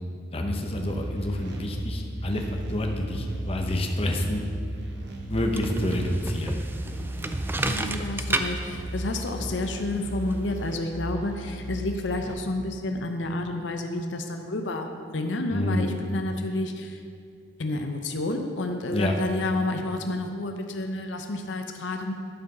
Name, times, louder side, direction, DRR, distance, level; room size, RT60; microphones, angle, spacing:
voice 1, 0.3-4.4 5.3-6.7 15.5-16.0 18.9-19.2, left 1 dB, 30° left, 2 dB, 0.8 m, -28 dB
sound 1, 0.8-12.3, right 1 dB, 65° right, 1.0 m, -36 dB
sound 2, 5.3-10.8, right 2 dB, 10° right, 0.4 m, -33 dB
voice 2, 7.0-17.0 17.6-22.1, left 2 dB, 75° left, 5 dB, 0.7 m, -30 dB
11.5 x 4.7 x 6.0 m, 2.3 s
head